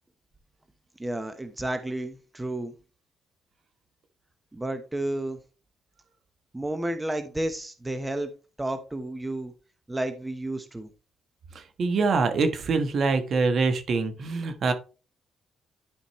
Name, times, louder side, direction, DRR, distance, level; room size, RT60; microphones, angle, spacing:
voice 1, 1.0-2.7 4.5-5.4 6.5-8.3 8.6-9.5 9.9-10.9, right 1 dB, 15° right, 1.0 m, -31 dB
voice 2, 11.5-14.7, right 4 dB, 55° right, 1.3 m, -24 dB
11.5 x 5.1 x 3.1 m
cardioid pair, 90°, 0 cm